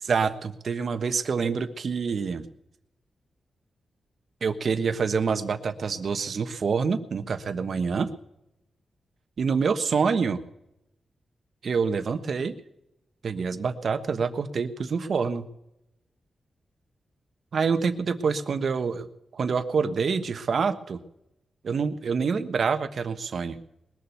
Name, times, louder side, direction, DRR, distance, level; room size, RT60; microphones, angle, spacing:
voice 1, 0.0-2.5 4.4-8.1 9.4-10.4 11.6-12.5 13.2-15.5 17.5-19.1 19.3-21.0 21.6-23.6, right 5 dB, 65° right, 9 dB, 1.2 m, -26 dB
21.0 x 7.1 x 8.2 m, 0.84 s
cardioid pair, 85°, 0 cm